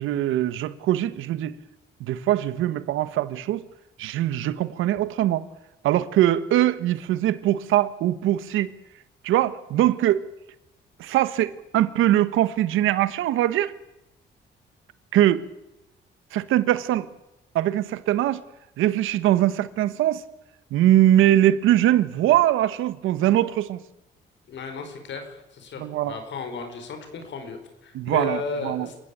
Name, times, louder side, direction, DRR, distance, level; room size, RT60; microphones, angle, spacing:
voice 1, 0.0-1.5 2.0-3.6 4.0-5.4 5.8-8.7 9.2-10.2 11.0-13.7 15.1-15.4 16.3-17.1 17.5-18.4 18.8-20.2 20.7-23.8 25.8-26.2 27.9-28.9, right 13 dB, 90° right, 1.4 m, -22 dB
voice 2, 24.5-29.0, left 3 dB, 65° left, 5.2 m, -34 dB
28.0 x 16.0 x 8.7 m
cardioid pair, 90°, 20 cm